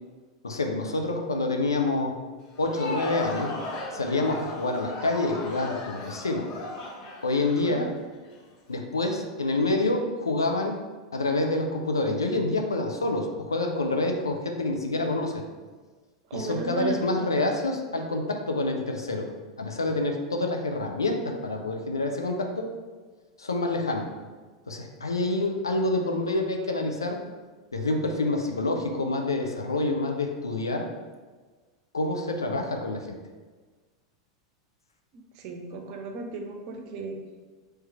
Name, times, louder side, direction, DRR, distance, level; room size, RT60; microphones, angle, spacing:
voice 1, 0.4-2.2 2.6-3.6 3.9-6.5 7.2-7.9 8.7-10.8 11.1-15.4 16.3-19.3 19.6-22.7 23.4-24.1 24.7-27.2 27.7-30.9 31.9-33.2, left 2 dB, 80° left, 3 dB, 0.5 m, -27 dB
Crowd, 2.5-8.4, left 2 dB, 45° left, 0.8 m, -36 dB
voice 2, 16.3-17.3 35.1-37.2, right 3 dB, 50° right, 3 dB, 0.7 m, -35 dB
3.2 x 3.0 x 4.5 m, 1.4 s
figure-of-eight pair, 90°, 2 cm